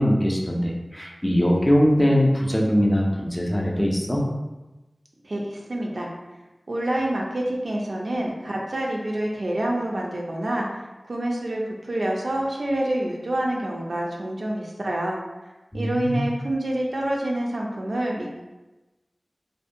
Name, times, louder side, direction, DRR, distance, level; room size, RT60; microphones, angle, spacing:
voice 1, 0.0-4.2 15.7-16.3, equal, 15° left, -2 dB, 0.5 m, -21 dB
voice 2, 5.2-6.1 6.7-10.8 11.1-15.2 15.7-18.4, right 1 dB, 75° right, -2 dB, 0.4 m, -27 dB
2.5 x 2.2 x 2.5 m, 1.1 s
wide cardioid pair, 55°, 0 cm